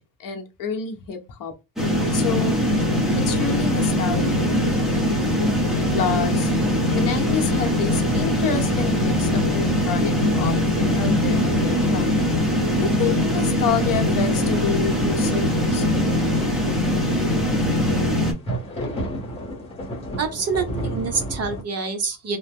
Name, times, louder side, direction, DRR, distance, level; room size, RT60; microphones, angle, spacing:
voice 1, 0.0-1.5 2.1-2.6 3.3-4.9 5.9-6.5 6.9-12.0 12.8-16.0, left 6 dB, 50° left, 0.8 m, -29 dB
sound 1, 1.8-18.3, left 1 dB, ahead, 0.6 m, -21 dB
sound 2, 18.3-21.6, right 1 dB, 15° left, 1.1 m, -31 dB
voice 2, 20.2-22.4, right 4 dB, 35° right, 0.7 m, -26 dB
2.8 x 2.0 x 3.4 m
cardioid pair, 145°, 42 cm